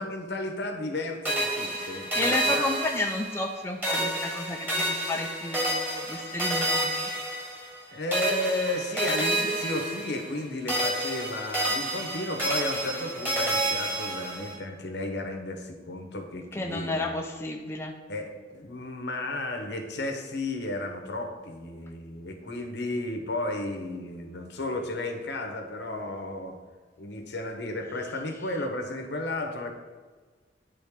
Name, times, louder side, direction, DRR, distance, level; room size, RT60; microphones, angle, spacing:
voice 1, 0.0-2.7 7.9-17.1 18.1-26.5 27.0-29.7, left 1 dB, 70° left, 4 dB, 1.0 m, -33 dB
sound 1, 1.2-3.5 3.8-7.8 8.1-10.4 10.7-14.5, right 1 dB, 10° right, 1.7 m, -29 dB
voice 2, 1.8-7.1 16.5-17.9, left 2 dB, 15° left, 1 dB, 0.5 m, -32 dB
9.9 x 3.8 x 3.6 m, 1.5 s
head